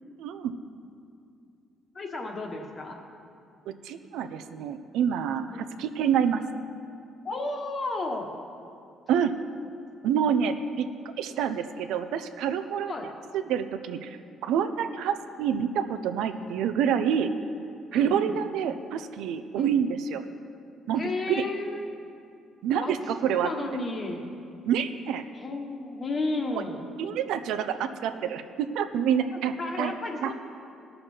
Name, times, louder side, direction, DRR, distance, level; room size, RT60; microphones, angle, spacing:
voice 1, 0.2-0.5 3.8-6.4 9.1-9.4 10.0-10.9 11.2-12.9 13.3-17.3 17.9-20.2 20.9-21.0 21.3-21.4 22.6-23.5 24.6-25.2 27.0-29.9 30.2-30.3, right 8 dB, 85° right, 9 dB, 0.6 m, -27 dB
voice 2, 1.9-3.0 5.5-5.6 7.2-8.3 12.8-13.1 17.9-18.3 19.6-19.8 21.0-21.8 22.8-22.9 23.4-24.2 25.3-26.8 29.6-30.3, left 2 dB, 30° left, 3 dB, 1.2 m, -32 dB
18.0 x 6.5 x 4.4 m, 2.5 s
cardioid pair, 160°, 0 cm